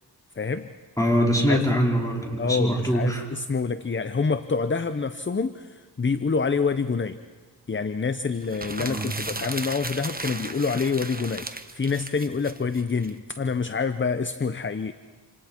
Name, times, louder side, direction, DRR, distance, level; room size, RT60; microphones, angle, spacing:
voice 1, 0.4-0.7 1.5-1.6 2.4-7.2 7.7-11.5 11.7-14.9, left 5 dB, 30° left, 11 dB, 0.7 m, -27 dB
voice 2, 1.0-3.2 8.8-9.1, equal, 10° left, -2 dB, 4.6 m, -23 dB
sound 1, 8.4-13.1, right 2 dB, 20° right, 1.2 m, -35 dB
27.5 x 27.5 x 4.5 m, 1.4 s
wide cardioid pair, 75°, 41 cm